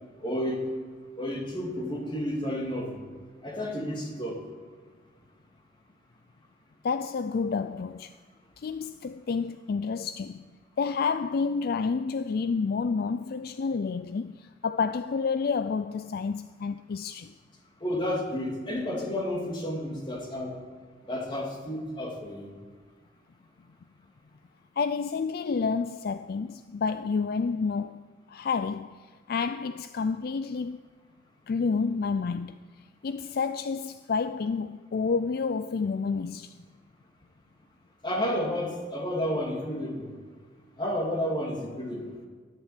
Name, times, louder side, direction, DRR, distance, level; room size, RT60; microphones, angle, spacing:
voice 1, 0.2-0.7 1.2-3.0 3.4-4.4 17.8-20.6 21.1-22.5 38.0-40.2 40.8-42.1, left 1 dB, 25° left, 2.7 m, -31 dB
voice 2, 6.8-8.1 8.6-10.5 10.8-17.3 24.8-30.8 31.5-32.7 33.0-36.6, left 5 dB, 55° left, 0.4 m, -29 dB
14.0 x 10.5 x 8.4 m
head